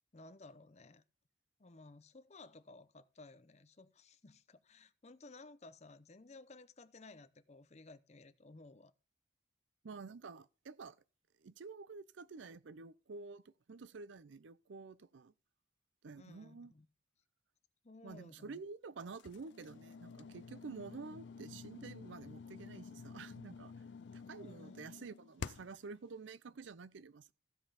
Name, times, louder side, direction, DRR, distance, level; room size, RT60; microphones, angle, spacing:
voice 1, 0.1-1.0 1.6-8.9 16.2-16.9 17.8-18.6 24.4-24.9, left 2 dB, 35° left, 0.7 m, -57 dB
voice 2, 9.8-11.0 11.4-15.3 16.0-16.7 18.0-23.7 24.1-27.3, right 4 dB, 75° right, 0.5 m, -50 dB
sound 1, 19.2-25.9, left 5 dB, 70° left, 0.4 m, -50 dB
15.0 x 5.3 x 5.6 m
head